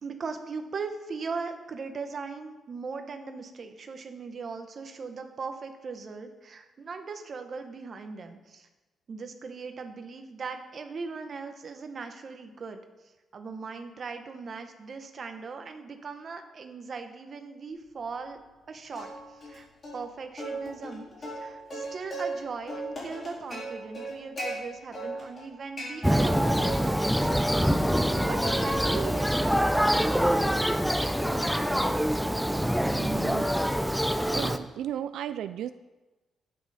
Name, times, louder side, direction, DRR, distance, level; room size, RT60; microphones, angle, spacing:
voice 1, 0.0-8.7 9.1-18.4 18.7-19.7 19.9-27.7 28.2-30.5 30.9-31.7, right 4 dB, 35° right, 6 dB, 1.0 m, -39 dB
Plucked string instrument, 18.9-19.6 19.8-20.0 20.4-22.4 22.7-24.5 24.9-25.5 25.8-26.8 27.1-28.6 28.8-29.3 29.8-34.0, right 2 dB, 30° left, 4.2 m, -38 dB
Thunder, 26.0-34.6, equal, ahead, 0.4 m, -25 dB
voice 2, 32.9-33.5 34.3-35.7, right 10 dB, 90° right, 12 dB, 0.3 m, -35 dB
12.0 x 8.7 x 4.1 m, 1.2 s
cardioid pair, 160°, 0 cm